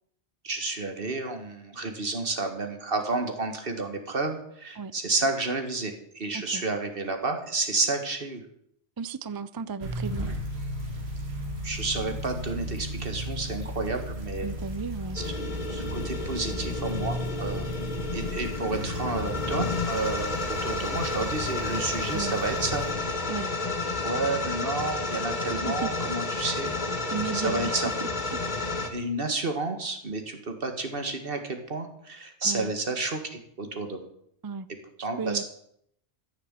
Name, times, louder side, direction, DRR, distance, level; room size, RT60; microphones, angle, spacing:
voice 1, 0.4-8.4 11.6-14.5 15.1-15.3 15.7-17.7 18.1-22.9 24.0-26.7 27.3-27.9 28.9-34.0 35.0-35.4, right 3 dB, 60° right, 5 dB, 1.9 m, -31 dB
voice 2, 6.3-6.6 9.0-10.4 14.4-15.2 22.1-22.4 23.3-23.5 25.7-25.9 27.1-28.4 32.4-32.7 34.4-34.7 35.2-35.4, right 5 dB, 40° right, 15 dB, 0.3 m, -34 dB
sound 1, 9.8-22.9, equal, 75° right, 2.9 m, -35 dB
sound 2, 15.2-28.9, left 3 dB, 45° left, 1.5 m, -31 dB
14.0 x 7.0 x 7.6 m, 0.71 s
omnidirectional pair, 1.1 m